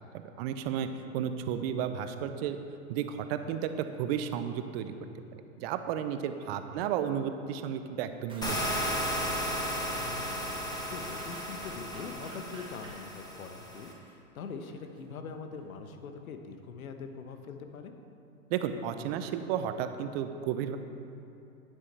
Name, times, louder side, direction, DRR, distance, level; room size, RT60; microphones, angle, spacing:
voice 1, 0.4-2.6 2.9-3.7 4.0-4.9 5.3-8.7 18.5-20.8, right 9 dB, 45° right, 9 dB, 0.8 m, -33 dB
voice 2, 6.5-6.9 9.9-17.9, left 5 dB, 75° left, 6 dB, 1.1 m, -43 dB
sound 1, 8.3-14.1 14.7-14.8, right 2 dB, 10° right, 1.1 m, -50 dB
sound 2, 8.4-13.9, equal, 10° left, 1.4 m, -34 dB
11.0 x 9.7 x 3.4 m, 2.8 s
hypercardioid pair, 110°, 42 cm